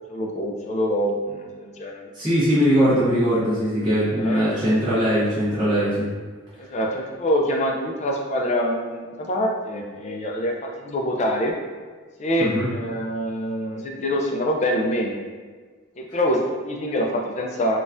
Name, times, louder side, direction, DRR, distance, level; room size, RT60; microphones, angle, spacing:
voice 1, 0.1-2.0 4.1-4.5 6.6-11.5 12.2-15.1 16.0-17.8, equal, 30° left, 0 dB, 0.4 m, -25 dB
voice 2, 2.1-6.1 12.4-12.7, equal, 20° right, -12 dB, 1.0 m, -20 dB
4.0 x 2.3 x 2.5 m, 1.5 s
head